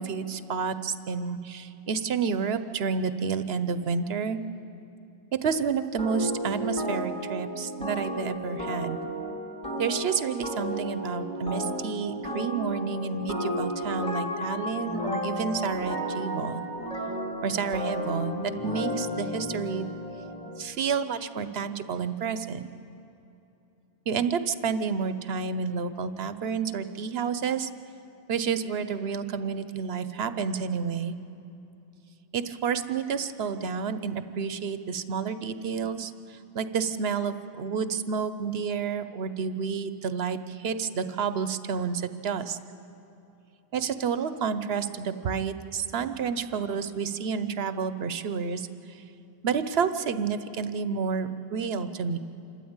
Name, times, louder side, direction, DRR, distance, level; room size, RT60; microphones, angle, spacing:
voice 1, 0.0-4.4 5.4-9.0 9.8-16.7 17.4-19.8 20.6-22.7 24.1-27.7 28.3-31.2 32.3-42.6 43.7-49.0 49.4-52.2, right 6 dB, 80° right, 12 dB, 1.0 m, -30 dB
sound 1, 6.0-20.6, equal, 5° left, 2.4 m, -33 dB
27.0 x 13.0 x 8.8 m, 2.8 s
omnidirectional pair, 1.0 m